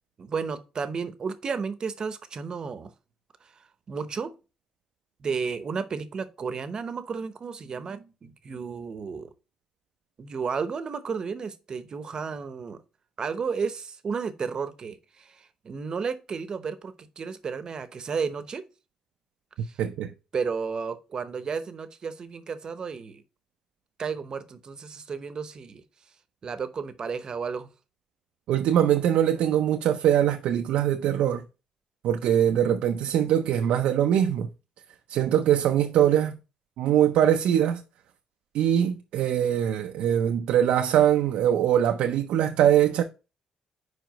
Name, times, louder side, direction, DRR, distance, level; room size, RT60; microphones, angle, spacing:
voice 1, 0.2-2.9 3.9-4.3 5.2-9.3 10.2-12.8 13.2-15.3 15.6-18.6 20.3-23.2 24.0-25.8 26.4-27.7, right 5 dB, 40° right, 0.8 m, -32 dB
voice 2, 19.8-20.1 28.5-31.4 32.0-34.5 35.1-36.4 36.8-37.8 38.5-43.0, right 10 dB, 85° right, 0.5 m, -22 dB
4.9 x 4.8 x 5.1 m
cardioid pair, 120°, 2 cm